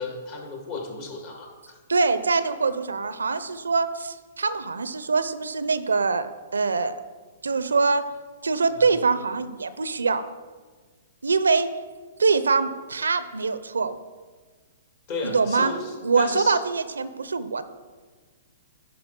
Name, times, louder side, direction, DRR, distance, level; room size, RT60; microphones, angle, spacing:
voice 1, 0.0-1.8 8.7-8.9 15.1-16.6, left 3 dB, 45° left, 0 dB, 1.9 m, -34 dB
voice 2, 1.9-7.0 7.4-8.0 8.4-10.2 11.2-11.7 12.2-14.0 15.2-15.7 16.0-17.6, right 4 dB, 85° right, 13 dB, 0.4 m, -24 dB
10.5 x 4.4 x 3.7 m, 1.4 s
hypercardioid pair, 125°, 0 cm